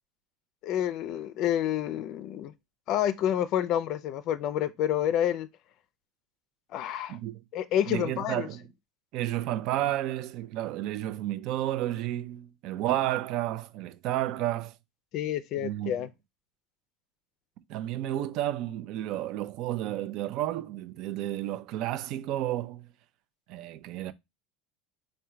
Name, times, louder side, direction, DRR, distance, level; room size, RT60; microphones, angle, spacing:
voice 1, 0.6-2.5 2.9-5.5 6.7-7.2 7.5-8.5 15.1-16.1, left 11 dB, 50° left, 0.4 m, -28 dB
voice 2, 7.1-7.4 7.9-8.6 9.1-14.7 15.6-16.1 17.7-22.9 23.5-24.1, right 13 dB, 55° right, 0.4 m, -31 dB
3.6 x 2.1 x 4.4 m
supercardioid pair, 130°, 0 cm